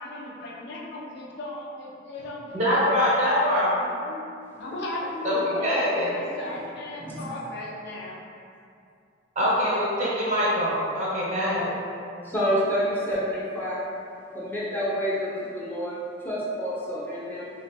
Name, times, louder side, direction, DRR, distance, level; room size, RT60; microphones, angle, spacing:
voice 1, 0.0-2.8 3.2-4.2 4.6-8.2, left 1 dB, 65° left, -5 dB, 0.5 m, -36 dB
voice 2, 2.5-3.7 5.2-5.3 5.6-6.3 9.4-11.7, equal, 40° right, -8 dB, 0.7 m, -24 dB
voice 3, 12.2-13.9 14.3-16.0 16.2-17.5, equal, 10° left, -8 dB, 0.5 m, -28 dB
2.9 x 2.2 x 2.6 m, 2.5 s
head